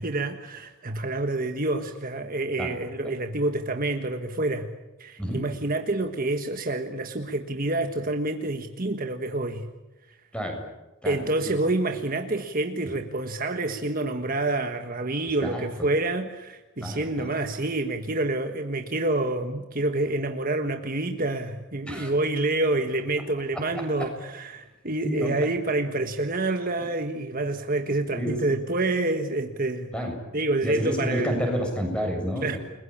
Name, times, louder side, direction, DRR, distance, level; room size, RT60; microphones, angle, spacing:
voice 1, 0.0-4.7 5.0-9.7 11.0-29.9 30.3-31.3 32.4-32.6, right 2 dB, 40° right, 6 dB, 1.5 m, -27 dB
voice 2, 10.3-10.6 11.0-11.5 12.9-13.0 15.4-15.6 16.8-17.3 21.9-22.1 24.0-24.1 25.0-25.3 28.1-28.6 29.9-30.1 30.6-32.6, equal, 5° left, 2 dB, 7.1 m, -30 dB
30.0 x 22.0 x 8.7 m, 1.1 s
head